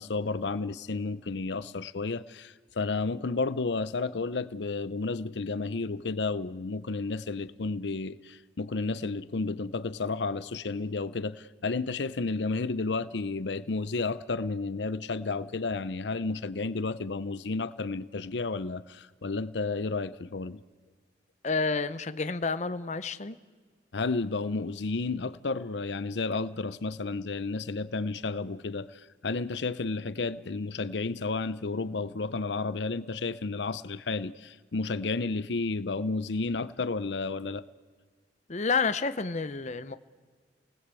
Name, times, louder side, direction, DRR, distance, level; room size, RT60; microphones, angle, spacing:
voice 1, 0.0-20.6 23.9-37.7, left 3 dB, 80° left, 15 dB, 0.7 m, -32 dB
voice 2, 21.4-23.4 38.5-40.0, left 4 dB, 40° left, 12 dB, 0.8 m, -29 dB
28.0 x 19.0 x 8.3 m, 1.5 s
head